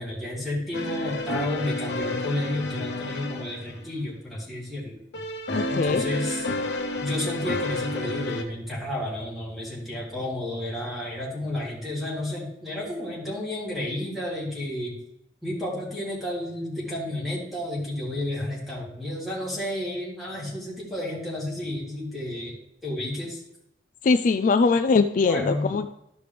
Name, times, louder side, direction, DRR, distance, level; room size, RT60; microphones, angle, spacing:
voice 1, 0.0-4.9 5.7-6.5 7.0-14.9 15.4-22.6 22.8-23.4 25.3-25.7, left 1 dB, ahead, -8 dB, 3.3 m, -31 dB
sound 1, 0.7-3.9 5.1-8.4, left 2 dB, 75° left, 1.0 m, -30 dB
voice 2, 5.5-6.1 24.0-25.9, left 4 dB, 45° left, 9 dB, 0.3 m, -21 dB
13.5 x 5.1 x 3.4 m, 0.83 s
head